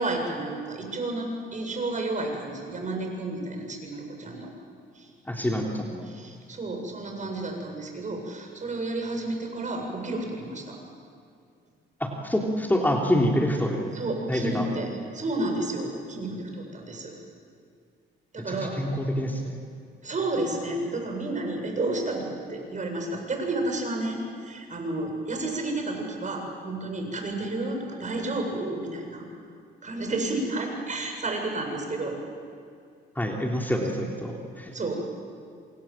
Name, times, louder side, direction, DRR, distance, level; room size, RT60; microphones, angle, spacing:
voice 1, 0.0-4.5 4.9-5.1 6.1-10.8 13.9-17.1 18.3-18.8 20.0-29.2 29.8-32.2 34.7-34.9, right 2 dB, 40° right, 2 dB, 7.8 m, -31 dB
voice 2, 5.3-6.1 12.0-13.9 14.3-14.7 18.5-19.6 33.2-34.7, equal, 10° left, 0 dB, 3.5 m, -26 dB
28.0 x 27.0 x 7.6 m, 2.3 s
cardioid pair, 90°, 20 cm